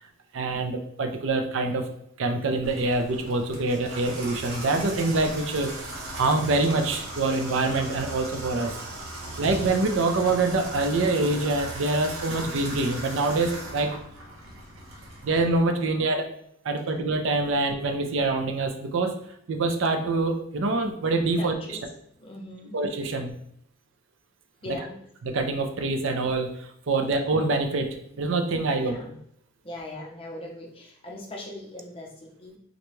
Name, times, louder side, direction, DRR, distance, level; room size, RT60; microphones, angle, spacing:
voice 1, 0.3-1.9 2.2-5.7 6.2-8.7 9.4-13.9 15.2-16.3 16.6-19.1 19.5-21.5 22.7-23.3 25.3-28.9, right 3 dB, 65° right, 5 dB, 0.4 m, -25 dB
Water tap faucet / Bathtub (filling or washing), 2.6-15.4, right 1 dB, 85° right, 0.8 m, -38 dB
voice 2, 21.4-21.8 22.2-22.8 24.6-25.0 28.7-29.2 29.6-32.6, left 1 dB, 25° left, -2 dB, 0.6 m, -40 dB
3.9 x 2.2 x 3.0 m, 0.69 s
head